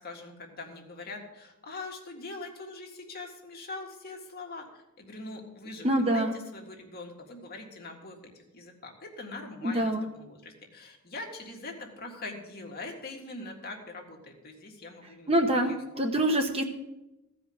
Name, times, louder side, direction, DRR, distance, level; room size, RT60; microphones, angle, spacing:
voice 1, 0.0-15.8 16.1-16.2, left 2 dB, 45° left, 1 dB, 1.8 m, -43 dB
voice 2, 5.8-6.3 9.6-10.1 15.3-16.6, right 1 dB, 25° right, 4 dB, 1.0 m, -25 dB
15.0 x 5.1 x 7.8 m, 0.97 s
head